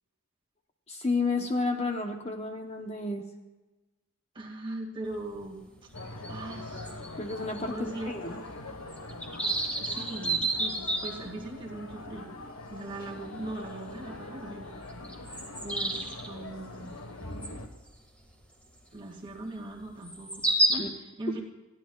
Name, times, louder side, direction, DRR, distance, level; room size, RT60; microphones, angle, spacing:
voice 1, 0.9-3.3 7.2-8.3 20.8-20.9 21.3-21.4, left 3 dB, 30° left, 4 dB, 0.8 m, -31 dB
voice 2, 4.3-5.6 6.3-6.9 7.7-8.1 9.8-12.4 12.7-14.7 15.6-17.0 18.9-21.4, right 1 dB, 20° right, -1 dB, 2.0 m, -40 dB
sound 1, 5.1-5.2 5.4-5.5 5.9-7.7 8.0-8.1 8.5-8.6 8.9-11.5 12.2-12.3 12.7-12.9 13.3-13.4 14.4-14.5 14.9-16.3 17.4-17.6 18.1-18.2 20.0-20.7, right 2 dB, 5° left, 1.8 m, -30 dB
sound 2, 5.9-17.7, left 2 dB, 80° left, 1.4 m, -43 dB
29.0 x 10.5 x 2.4 m, 1.2 s
head